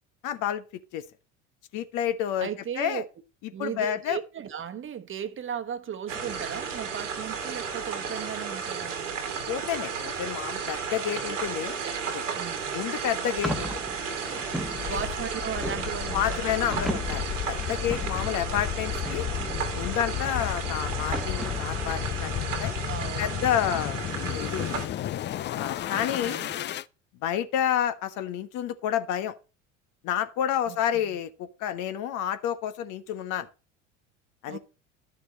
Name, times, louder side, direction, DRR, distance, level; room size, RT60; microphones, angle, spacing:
voice 1, 0.2-0.6 0.9-1.0 1.7-2.5 2.8-3.0 3.6-4.2 9.5-11.8 12.1-12.2 12.7-13.8 14.2-14.4 16.1-19.3 19.7-22.7 23.2-24.0 24.3-24.9 25.5-26.4 27.2-29.3 30.0-33.5 34.4-34.6, left 10 dB, 55° left, 1.2 m, -29 dB
voice 2, 2.4-3.0 3.5-9.2 11.1-11.4 11.8-12.0 12.3-12.7 14.9-16.5 18.3-18.4 19.3-19.7 22.9-23.5 23.8-24.3 25.9-26.5 30.7-31.1 34.5-34.6, right 8 dB, 35° right, 1.3 m, -37 dB
sound 1, 6.1-24.9, right 6 dB, 85° right, 2.2 m, -34 dB
sound 2, 13.4-22.4, equal, ahead, 1.3 m, -38 dB
sound 3, 14.6-26.8, left 13 dB, 30° left, 0.5 m, -33 dB
11.5 x 6.8 x 4.0 m
hypercardioid pair, 70°, 37 cm